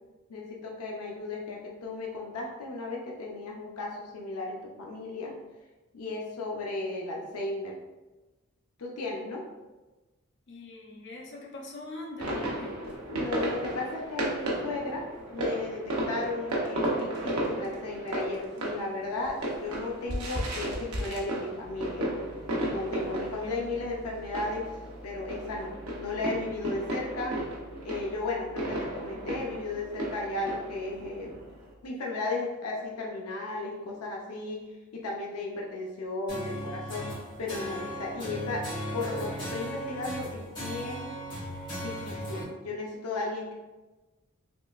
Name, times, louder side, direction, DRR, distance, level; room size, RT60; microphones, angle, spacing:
voice 1, 0.3-5.3 5.9-7.7 8.8-9.4 13.1-22.1 22.6-24.7 25.0-27.3 27.8-31.3 31.8-34.6 34.9-37.1 37.4-38.7 38.9-41.1 41.8-43.5, left 2 dB, 90° left, -1 dB, 0.6 m, -35 dB
voice 2, 10.5-12.8, left 2 dB, 55° left, -3 dB, 0.7 m, -42 dB
sound 1, 12.2-31.7, right 1 dB, 85° right, 0.8 m, -34 dB
Piano, 21.6-31.9, equal, 15° right, 0.6 m, -50 dB
sound 2, 36.3-42.4, equal, 20° left, 1.4 m, -37 dB
3.7 x 3.0 x 2.4 m, 1.2 s
head